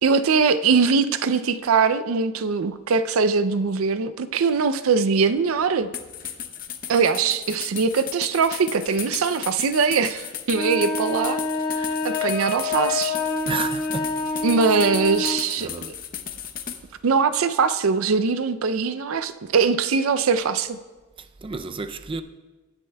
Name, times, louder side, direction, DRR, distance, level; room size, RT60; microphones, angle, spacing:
voice 1, 0.0-5.9 6.9-11.4 11.8-13.2 14.4-15.7 17.0-20.8, right 5 dB, 90° right, 0.5 m, -22 dB
sound 1, 5.9-16.8, left 9 dB, 45° left, 0.7 m, -35 dB
sound 2, 10.5-15.5, left 3 dB, 25° left, 1.2 m, -27 dB
voice 2, 13.5-14.2 15.6-16.0 21.2-22.2, right 4 dB, 25° right, 0.4 m, -32 dB
18.0 x 9.7 x 2.3 m
head